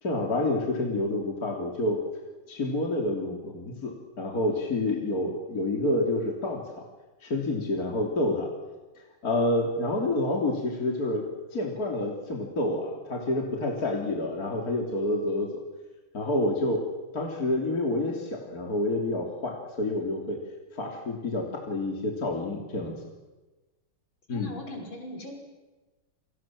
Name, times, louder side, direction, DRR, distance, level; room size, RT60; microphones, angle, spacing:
voice 1, 0.0-2.0 2.5-6.8 7.2-8.5 9.2-11.2 11.5-15.6 16.1-16.8 17.1-20.4 20.7-23.0 24.3-24.5, left 2 dB, 45° left, 0 dB, 3.7 m, -28 dB
voice 2, 24.3-25.3, left 1 dB, 65° left, 1 dB, 6.5 m, -39 dB
29.0 x 25.5 x 7.6 m, 1.2 s
omnidirectional pair, 2.3 m